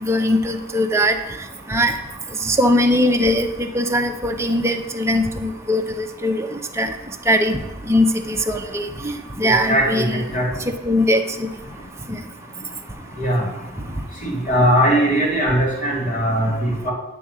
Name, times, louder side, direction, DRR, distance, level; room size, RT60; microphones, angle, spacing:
voice 1, 0.0-1.2 1.7-2.0 2.4-6.9 7.3-7.6 7.9-9.1 9.4-10.2 10.9-11.5 12.1-12.2, equal, 15° right, 3 dB, 0.7 m, -20 dB
voice 2, 9.4-10.5 13.2-13.5 14.2-16.9, right 1 dB, 40° left, -2 dB, 2.2 m, -20 dB
10.5 x 3.7 x 7.3 m, 0.99 s
head